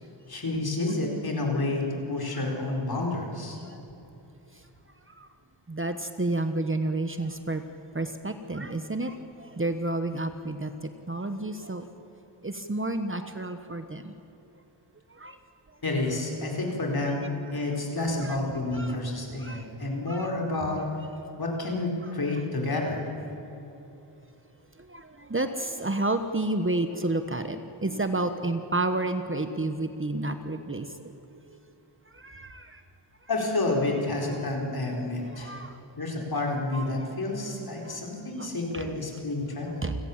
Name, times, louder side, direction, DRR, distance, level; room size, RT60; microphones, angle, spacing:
voice 1, 0.3-3.6 15.8-17.2 17.5-20.8 21.4-23.1 33.3-35.5 36.0-39.8, left 2 dB, 50° left, 0 dB, 4.8 m, -29 dB
voice 2, 5.7-7.6 7.9-11.8 12.4-14.1 15.2-15.4 18.0-18.4 18.7-19.0 19.4-19.7 20.1-20.3 24.8-31.1 31.5-31.6 32.1-32.8 35.2-35.8 36.7-37.1 37.8-38.0 38.4-38.8 39.8-39.9, right 2 dB, 25° right, 8 dB, 1.2 m, -31 dB
29.0 x 17.5 x 7.4 m, 3.0 s
wide cardioid pair, 100°, 46 cm